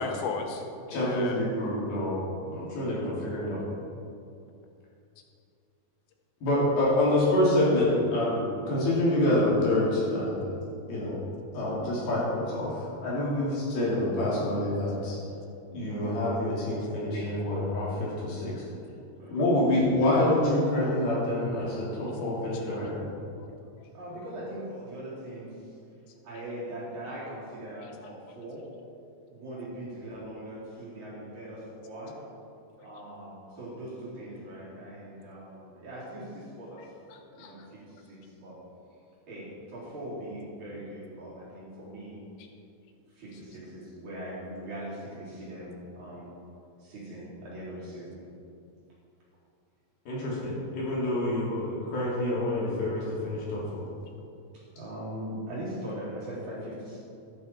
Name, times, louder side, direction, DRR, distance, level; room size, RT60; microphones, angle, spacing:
voice 1, 0.0-1.4 23.8-23.9 36.8-37.7, left 5 dB, 85° left, 4 dB, 3.0 m, -36 dB
voice 2, 0.9-2.2 2.5-3.6 6.4-10.5 10.9-11.1 11.5-15.2 15.7-18.5 19.3-23.0 50.1-53.8, left 1 dB, 60° left, -7 dB, 5.0 m, -27 dB
voice 3, 23.9-25.7 26.2-28.6 29.3-32.2 32.8-36.9 37.4-38.6 39.3-42.2 43.1-46.3 46.8-48.2 54.7-57.0, right 1 dB, 45° right, -8 dB, 5.1 m, -40 dB
14.0 x 12.0 x 4.6 m, 2.6 s
omnidirectional pair, 5.1 m